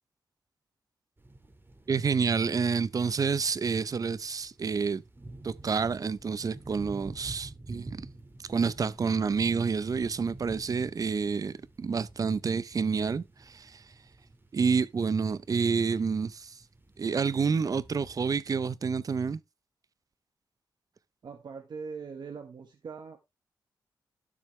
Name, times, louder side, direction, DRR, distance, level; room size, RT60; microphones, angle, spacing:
sound 1, 1.2-18.6, right 2 dB, 25° right, 1.9 m, -50 dB
voice 1, 1.9-5.0 5.4-8.1 8.5-13.8 14.5-16.6 17.0-19.4, right 5 dB, 50° right, 0.6 m, -29 dB
voice 2, 21.2-23.2, right 5 dB, 65° right, 1.3 m, -41 dB
12.0 x 6.2 x 3.2 m
cardioid pair, 75°, 8 cm